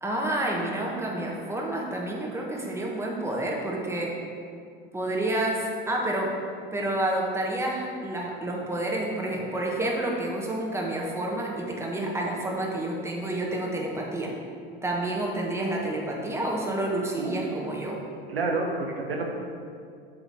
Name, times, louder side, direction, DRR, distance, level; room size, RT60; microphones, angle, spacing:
voice 1, 0.0-4.2 4.9-6.3 6.7-14.3 14.8-18.0, right 1 dB, 10° right, -2 dB, 1.5 m, -29 dB
voice 2, 17.2-17.7 18.3-19.3, right 3 dB, 85° right, 1 dB, 1.0 m, -29 dB
7.9 x 3.9 x 6.3 m, 2.3 s
hypercardioid pair, 80°, 29 cm